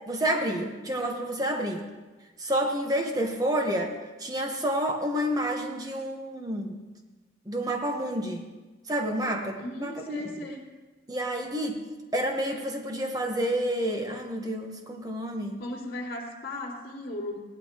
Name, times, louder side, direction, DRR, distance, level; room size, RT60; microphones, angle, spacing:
voice 1, 0.1-1.8 2.4-6.8 7.5-8.4 8.9-10.3 11.1-11.8 12.1-15.6, right 1 dB, 20° right, 3 dB, 1.0 m, -29 dB
voice 2, 9.6-10.7 15.6-17.4, left 1 dB, 50° left, -7 dB, 2.8 m, -36 dB
17.5 x 11.5 x 2.9 m, 1.2 s
head